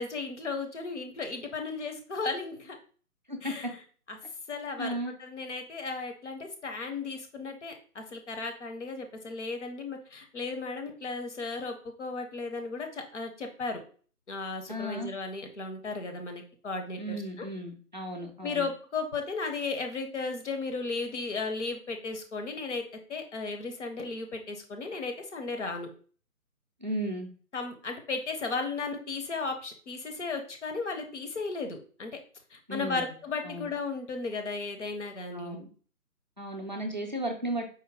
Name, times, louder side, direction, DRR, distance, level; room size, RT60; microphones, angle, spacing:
voice 1, 0.0-2.8 3.4-3.7 4.1-4.2 4.5-4.9 5.2-13.8 14.3-17.2 18.4-22.8 23.1-25.9 27.5-32.2 32.5-35.6, left 4 dB, 50° left, 5 dB, 0.8 m, -35 dB
voice 2, 3.3-3.7 4.8-5.1 14.7-15.1 17.0-18.7 26.8-27.3 32.7-33.1 33.4-33.7 35.3-35.7 36.4-37.7, right 1 dB, 35° right, 2 dB, 0.4 m, -35 dB
4.5 x 2.2 x 3.5 m, 0.42 s
figure-of-eight pair, 145°, 45 cm